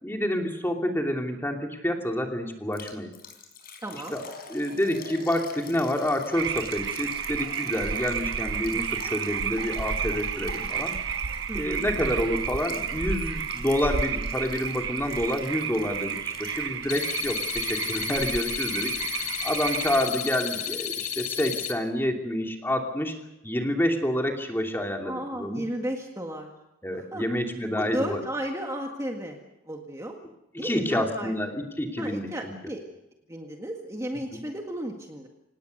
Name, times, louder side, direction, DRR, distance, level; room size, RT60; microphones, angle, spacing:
voice 1, 0.0-3.1 4.1-4.2 4.5-10.9 11.5-18.9 19.4-23.2 23.4-25.6 26.8-28.2 30.5-32.5 34.3-34.4, left 1 dB, 10° left, 3 dB, 2.8 m, -28 dB
Liquid, 2.7-17.1 17.4-17.5 18.0-18.1, left 5 dB, 45° left, 4.7 m, -45 dB
voice 2, 3.8-4.2 11.5-11.8 25.0-26.5 26.9-27.2 27.7-30.2 30.6-31.3 32.0-32.8 33.3-35.3, right 1 dB, 15° right, 2 dB, 1.9 m, -34 dB
sound 1, 6.3-20.1, right 7 dB, 60° right, 0.9 m, -31 dB
sound 2, 16.9-21.7, left 9 dB, 90° left, 2.2 m, -32 dB
26.5 x 19.0 x 6.7 m, 0.89 s
head